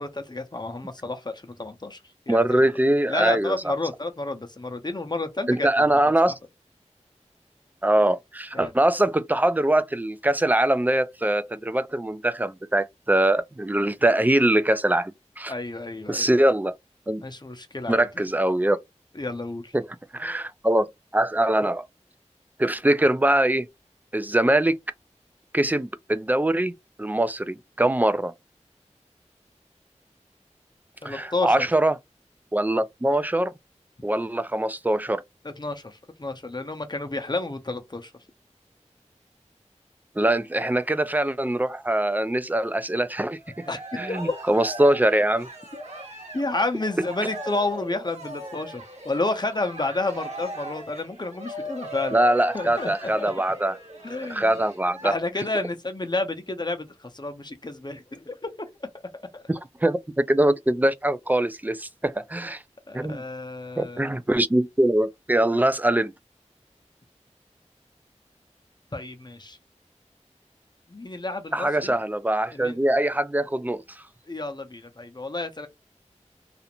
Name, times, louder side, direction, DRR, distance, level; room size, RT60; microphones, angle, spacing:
voice 1, 0.0-2.0 2.3-2.6 3.1-5.9 6.2-6.3 8.5-8.7 15.5-16.3 17.2-18.1 19.1-19.7 31.0-31.7 35.4-38.1 43.7-44.4 46.3-52.2 52.5-53.3 54.0-54.6 55.0-58.5 59.3-59.4 62.9-64.2 68.9-69.6 70.9-71.9 72.5-72.8 74.3-75.7, left 2 dB, 35° left, 0.6 m, -30 dB
voice 2, 2.3-3.5 5.5-6.3 7.8-15.5 16.1-16.7 17.1-17.2 17.9-18.8 19.7-19.9 20.1-21.9 22.6-23.7 24.1-24.8 25.5-26.7 27.0-28.3 31.0-31.9 32.5-33.5 34.0-35.2 40.2-43.4 44.0-45.5 52.1-53.8 54.3-55.2 59.5-62.6 62.9-63.2 63.8-66.1 71.5-73.8, right 1 dB, 15° right, 0.3 m, -22 dB
Cheering, 43.4-55.1, equal, 65° right, 1.2 m, -39 dB
2.4 x 2.1 x 2.9 m
wide cardioid pair, 45°, 12 cm